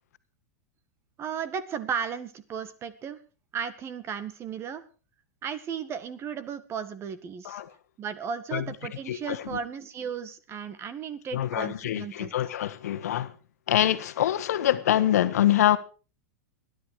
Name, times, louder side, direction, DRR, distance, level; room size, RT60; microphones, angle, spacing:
voice 1, 1.2-3.2 3.5-4.8 5.4-7.6 8.0-12.3, right 7 dB, 30° right, 1.8 m, -35 dB
voice 2, 9.1-9.4 11.3-13.3 13.7-15.8, left 12 dB, 80° left, 1.4 m, -25 dB
20.5 x 11.0 x 4.9 m
hypercardioid pair, 120°, 8 cm